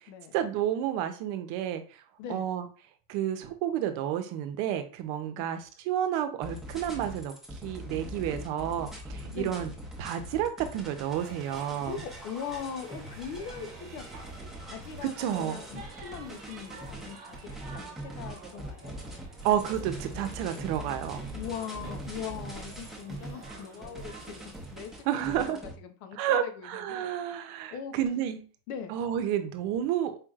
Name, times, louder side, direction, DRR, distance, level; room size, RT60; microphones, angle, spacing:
voice 1, 0.3-2.0 2.3-2.7 3.1-7.3 7.6-9.7 10.0-12.0 15.0-15.6 19.4-21.2 25.1-25.6 26.2-28.4 28.9-30.2, right 10 dB, 60° right, 8 dB, 0.8 m, -30 dB
sound 1, 6.4-25.7, right 1 dB, ahead, 0.8 m, -42 dB
voice 2, 9.1-9.6 11.9-14.3 14.6-17.4 17.7-18.9 21.3-24.4 24.7-27.1 27.7-27.9 28.7-29.0, left 7 dB, 85° left, 7 dB, 1.0 m, -41 dB
sound 2, 11.1-25.4, right 4 dB, 30° right, 1.5 m, -50 dB
4.9 x 3.1 x 2.4 m, 0.37 s
supercardioid pair, 140°, 45 cm